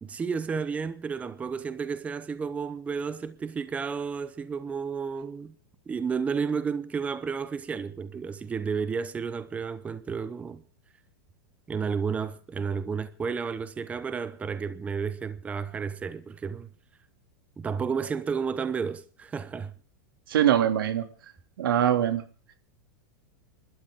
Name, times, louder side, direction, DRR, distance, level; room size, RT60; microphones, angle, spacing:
voice 1, 0.0-5.5 5.9-10.6 11.7-16.7 17.6-19.7, right 6 dB, 10° right, 0.8 m, -32 dB
voice 2, 20.3-21.0 21.6-22.2, right 10 dB, 85° right, 2.7 m, -22 dB
30.0 x 12.5 x 3.7 m
supercardioid pair, 155°, 11 cm